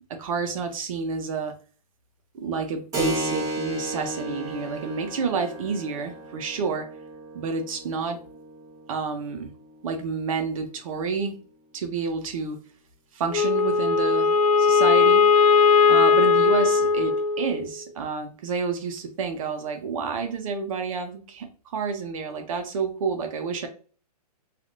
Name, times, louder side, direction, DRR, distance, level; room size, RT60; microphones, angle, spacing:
voice 1, 0.2-1.5 2.3-6.9 7.3-8.2 8.9-9.5 9.8-11.4 11.7-12.6 13.1-14.3 14.6-15.2 15.8-23.7, right 5 dB, 55° right, 5 dB, 0.7 m, -29 dB
Keyboard (musical), 2.9-11.1, right 1 dB, 15° right, 1.0 m, -35 dB
Wind instrument woodwind instrument, 13.3-17.8, left 5 dB, 65° left, 0.4 m, -19 dB
3.3 x 2.5 x 2.5 m, 0.39 s
hypercardioid pair, 135°, 21 cm